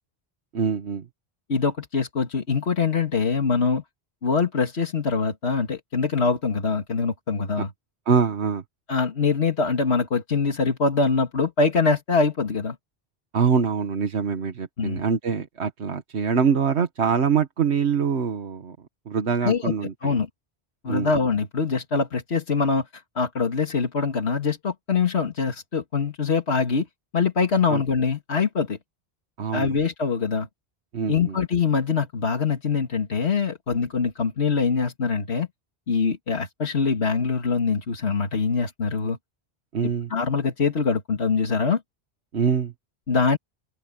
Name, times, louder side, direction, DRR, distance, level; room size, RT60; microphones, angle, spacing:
voice 1, 0.5-1.0 8.1-8.6 13.3-18.8 19.1-19.9 20.9-21.1 27.7-27.8 29.4-29.7 30.9-31.4 39.7-40.1 42.3-42.7, right 6 dB, 90° right, 1.5 m, -24 dB
voice 2, 1.5-3.8 4.2-7.7 8.9-12.8 14.8-15.0 19.4-19.7 20.0-20.3 20.8-26.9 27.1-28.8 29.5-30.5 31.1-35.5 35.9-39.2 39.8-41.8 43.1-43.4, left 5 dB, 80° left, 2.2 m, -23 dB
open air
omnidirectional pair, 1.1 m